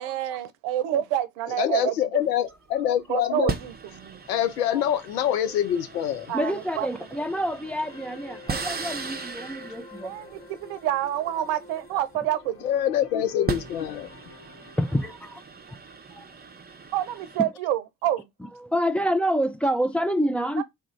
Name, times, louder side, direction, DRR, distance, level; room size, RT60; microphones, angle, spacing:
voice 1, 0.0-2.2 3.1-4.2 6.3-6.9 10.0-10.3 10.6-12.6 16.9-18.3 20.6-20.7, right 12 dB, 70° right, 0.7 m, -28 dB
voice 2, 1.6-3.5 4.3-6.3 12.6-14.1, left 10 dB, 90° left, 0.5 m, -25 dB
sound 1, 2.2-2.5 3.5-12.5 13.2-17.4, right 4 dB, 20° right, 0.7 m, -38 dB
sound 2, 5.7-15.1, left 2 dB, 30° left, 1.0 m, -48 dB
voice 3, 6.3-10.5 14.8-15.4 16.2-16.3 18.4-20.6, equal, 5° left, 0.4 m, -27 dB
3.3 x 2.4 x 3.1 m
hypercardioid pair, 50°, 47 cm